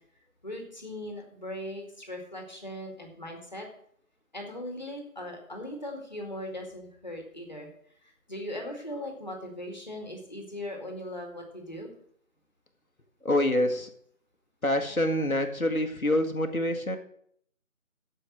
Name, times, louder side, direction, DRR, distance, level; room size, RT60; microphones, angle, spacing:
voice 1, 0.4-3.7 4.3-7.7 8.0-11.9, left 1 dB, 30° left, 2 dB, 2.2 m, -39 dB
voice 2, 13.2-13.9 14.6-17.0, left 1 dB, 80° left, 5 dB, 1.8 m, -26 dB
8.3 x 7.6 x 8.7 m, 0.66 s
figure-of-eight pair, 170°, 42 cm